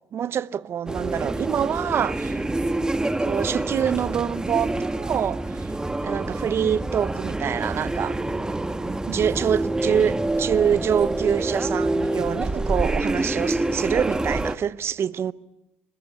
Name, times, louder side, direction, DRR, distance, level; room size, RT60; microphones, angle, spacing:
voice 1, 0.1-2.4 3.2-5.7 6.0-8.2 9.1-15.3, right 8 dB, 55° right, 0.8 m, -25 dB
sound 1, 0.9-14.6, right 2 dB, 15° right, 1.2 m, -27 dB
28.5 x 13.5 x 10.0 m
supercardioid pair, 70°, 5 cm